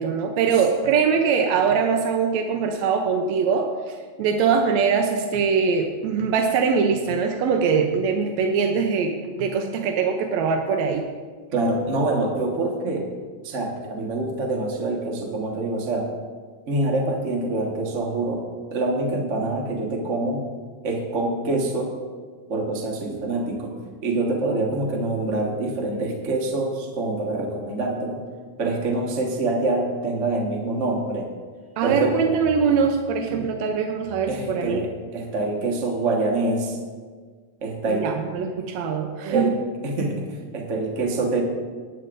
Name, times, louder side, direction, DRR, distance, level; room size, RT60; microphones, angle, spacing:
voice 1, 0.0-11.1 31.8-34.9 37.9-39.5, right 6 dB, 75° right, 4 dB, 1.7 m, -22 dB
voice 2, 11.5-13.1 13.4-16.1 16.7-18.4 18.7-20.5 20.8-21.9 22.5-23.7 24.0-28.2 28.6-31.3 31.8-32.2 33.3-33.5 34.3-36.8 37.6-38.1 39.3-39.5 39.8-40.3 40.5-41.4, right 2 dB, 55° right, 0 dB, 0.8 m, -25 dB
19.0 x 10.5 x 2.6 m, 1.5 s
omnidirectional pair, 3.8 m